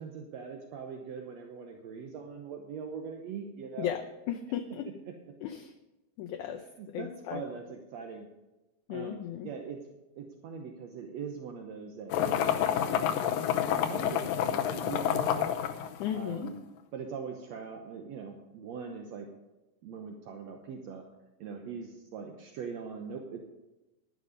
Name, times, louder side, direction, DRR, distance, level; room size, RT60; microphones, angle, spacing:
voice 1, 0.0-3.9 6.6-8.3 8.9-9.8 10.1-13.2 13.5-15.5 16.1-16.5 16.9-19.3 19.8-21.0 21.4-23.4, right 6 dB, 75° right, 3 dB, 1.6 m, -41 dB
voice 2, 4.3-4.9 5.4-5.7 6.2-6.6 6.9-7.4 8.9-9.5 16.0-16.5, left 10 dB, 90° left, 5 dB, 1.7 m, -35 dB
sound 1, 12.1-16.5, left 10 dB, 75° left, 2.3 m, -29 dB
11.5 x 10.5 x 5.2 m, 1.0 s
omnidirectional pair, 4.3 m